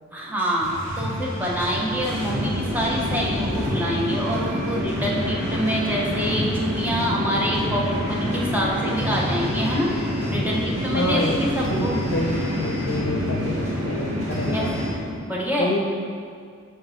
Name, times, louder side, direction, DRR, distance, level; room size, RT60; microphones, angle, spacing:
voice 1, 0.1-9.9 10.3-12.0 14.5-14.7 15.3-15.7, equal, 10° right, -4 dB, 0.8 m, -26 dB
sound 1, 0.6-14.9, equal, 35° right, 1.5 m, -31 dB
Chatter / Fixed-wing aircraft airplane, 1.8-15.2, left 1 dB, 85° right, 1.5 m, -28 dB
voice 2, 10.9-11.4 11.7-14.7 15.6-15.8, left 2 dB, 60° left, 2 dB, 0.6 m, -27 dB
7.8 x 4.7 x 3.2 m, 2.2 s
head